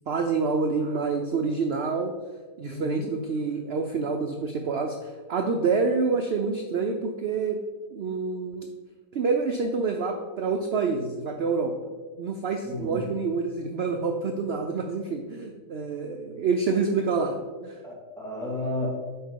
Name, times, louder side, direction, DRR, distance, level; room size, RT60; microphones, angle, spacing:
voice 1, 0.1-2.1 2.6-7.6 7.9-8.7 9.1-11.7 12.2-17.3 17.6-17.8, right 4 dB, 85° right, 4 dB, 0.5 m, -27 dB
voice 2, 2.7-3.1 12.7-13.1 17.8-18.9, left 2 dB, ahead, -6 dB, 1.9 m, -33 dB
7.1 x 4.8 x 3.7 m, 1.3 s
omnidirectional pair, 1.7 m